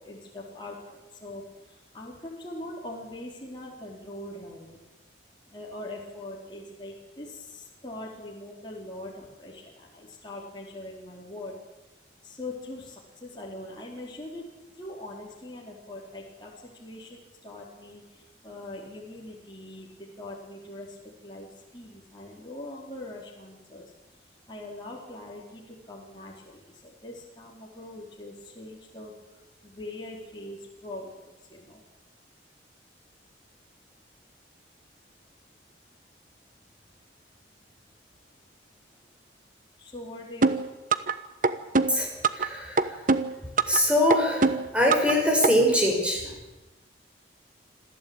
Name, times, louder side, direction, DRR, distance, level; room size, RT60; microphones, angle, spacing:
voice 1, 0.0-4.8 5.5-11.6 12.2-14.4 14.7-16.5 16.8-31.8 38.9-39.0 39.8-40.8, left 1 dB, 25° left, -3 dB, 4.3 m, -42 dB
sound 1, 40.4-41.1 41.4-42.5 42.8-43.8 44.1-45.1 45.4-45.5, right 3 dB, 45° right, 1.1 m, -23 dB
voice 2, 41.9-43.0 43.7-46.3, left 1 dB, 5° right, 0 dB, 5.9 m, -24 dB
26.5 x 14.5 x 9.0 m, 1.1 s
head